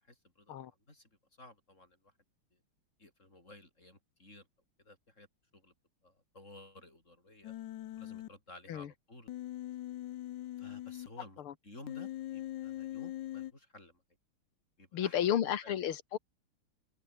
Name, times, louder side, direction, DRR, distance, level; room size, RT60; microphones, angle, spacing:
voice 1, 0.0-1.1 1.4-2.1 2.5-2.6 3.0-4.5 4.8-5.3 5.5-5.7 6.0-7.5 8.0-9.3 10.6-14.0 14.8-15.8, left 2 dB, 35° left, 8.0 m, -55 dB
Human voice, 7.4-8.3 9.3-11.1 11.9-13.5, left 13 dB, 65° left, 1.2 m, -41 dB
voice 2, 14.9-16.2, left 10 dB, 85° left, 2.2 m, -32 dB
omnidirectional pair, 2.3 m